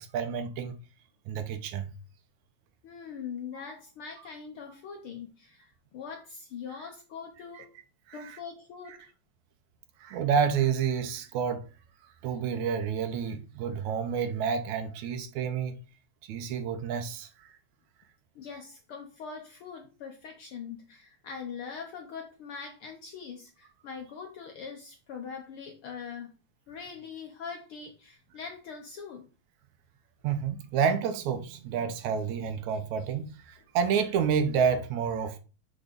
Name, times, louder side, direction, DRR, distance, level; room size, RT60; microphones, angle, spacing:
voice 1, 0.1-0.8 1.3-1.9 10.0-11.7 12.2-15.8 16.3-17.3 30.2-35.4, right 7 dB, 80° right, 2.2 m, -29 dB
voice 2, 2.8-7.7 8.1-9.1 18.3-26.3 26.7-29.3, left 6 dB, 70° left, 1.3 m, -42 dB
6.2 x 5.0 x 5.1 m
omnidirectional pair, 3.4 m